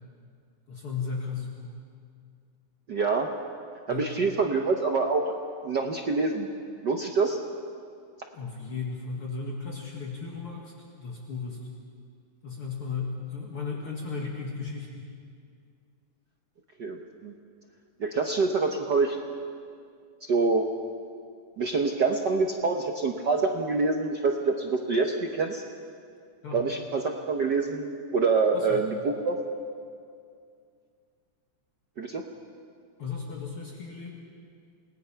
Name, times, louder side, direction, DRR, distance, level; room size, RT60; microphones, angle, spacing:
voice 1, 0.7-1.8 3.9-4.1 8.3-11.7 12.4-15.0 26.4-26.6 28.5-28.8 33.0-34.1, left 5 dB, 50° left, -2 dB, 2.7 m, -35 dB
voice 2, 2.9-3.3 3.9-5.2 5.6-6.5 6.8-7.4 16.8-17.3 18.0-19.2 20.3-20.7 21.6-25.6 26.5-27.8 28.1-29.4 32.0-32.2, right 4 dB, 65° right, 2 dB, 1.0 m, -26 dB
28.5 x 20.0 x 5.8 m, 2.3 s
omnidirectional pair, 3.4 m